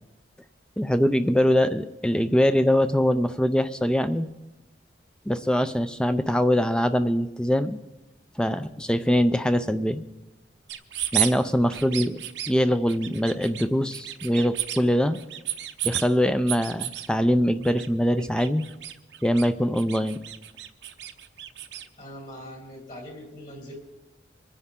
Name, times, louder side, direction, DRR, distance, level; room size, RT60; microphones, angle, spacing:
voice 1, 0.8-4.3 5.3-7.8 8.4-10.0 11.1-12.2 12.5-15.2 15.8-18.6 19.2-20.2, equal, 5° left, 11 dB, 0.4 m, -23 dB
sound 1, 10.7-11.3 11.7-12.5 12.9-13.6 13.9-14.8 15.1-16.1 16.5-17.1 17.6-17.9 18.1-19.5 19.7-21.8, right 13 dB, 85° right, 0.8 m, -32 dB
voice 2, 22.0-23.8, equal, 45° left, -1 dB, 3.6 m, -41 dB
24.0 x 9.8 x 3.7 m, 1.0 s
head